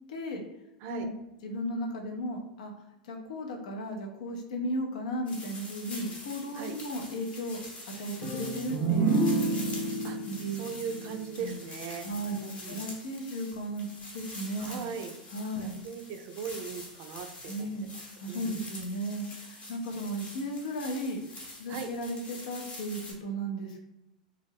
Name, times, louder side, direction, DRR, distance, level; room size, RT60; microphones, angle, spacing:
voice 1, 0.1-0.4 0.9-1.1 1.4-2.7 3.0-7.6 8.0-9.2 10.2-10.6 11.4-11.6 12.0-14.9 15.3-15.8 17.5-21.2 21.5-23.8, equal, 65° left, 2 dB, 0.5 m, -35 dB
sound 1, 5.3-23.1, left 2 dB, 30° left, 0.8 m, -45 dB
sound 2, 8.2-11.9, right 3 dB, 15° right, 0.7 m, -29 dB
voice 2, 10.5-12.8 14.6-15.1 15.6-17.7 18.3-18.6 21.7-21.9, right 6 dB, 50° right, 7 dB, 0.3 m, -39 dB
2.3 x 2.0 x 3.3 m, 0.91 s
hypercardioid pair, 95°, 4 cm